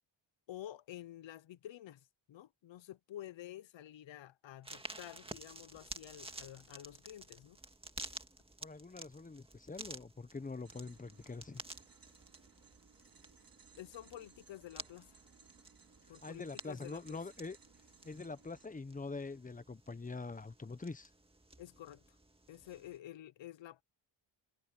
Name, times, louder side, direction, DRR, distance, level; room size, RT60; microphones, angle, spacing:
voice 1, 0.5-7.6 13.7-15.2 16.1-17.2 21.6-22.0 22.5-23.8, left 12 dB, 70° left, 0.8 m, -50 dB
sound 1, 4.6-23.0, right 2 dB, 10° right, 1.9 m, -52 dB
voice 2, 8.6-11.6 16.1-17.6 18.0-21.1, left 3 dB, 15° left, 0.9 m, -44 dB
sound 2, 10.6-18.7, right 6 dB, 45° right, 3.0 m, -63 dB
wide cardioid pair, 115°, 47 cm